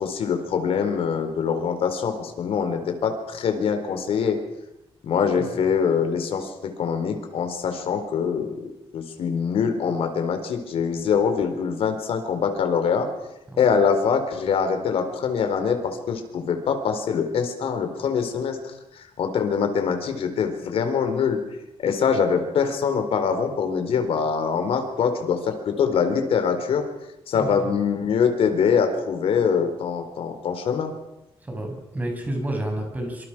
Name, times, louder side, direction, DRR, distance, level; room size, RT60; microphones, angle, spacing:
voice 1, 0.0-4.4 5.0-8.6 8.9-13.1 13.6-21.4 21.8-26.9 27.3-30.9, left 6 dB, 75° left, 7 dB, 4.2 m, -24 dB
voice 2, 27.4-27.7 31.4-33.3, right 1 dB, 15° right, 3 dB, 6.2 m, -30 dB
26.5 x 25.0 x 6.2 m, 0.90 s
wide cardioid pair, 165°, 10 cm